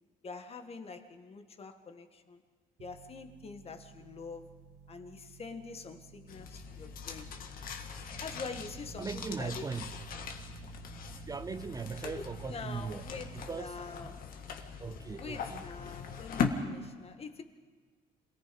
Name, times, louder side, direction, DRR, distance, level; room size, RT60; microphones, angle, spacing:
voice 1, 0.2-2.4 2.8-7.4 8.2-9.7 12.0-14.2 15.2-17.4, left 4 dB, 35° left, 7 dB, 1.8 m, -45 dB
sound 1, 2.8-13.5, right 9 dB, 80° right, 1.3 m, -53 dB
sound 2, 6.3-16.5, left 7 dB, 60° left, 2.0 m, -40 dB
voice 2, 9.0-9.9 11.1-13.1 13.5-14.1 14.8-15.6, right 5 dB, 20° right, 12 dB, 0.5 m, -39 dB
27.0 x 18.5 x 5.3 m, 1.5 s
cardioid pair, 110°, 17 cm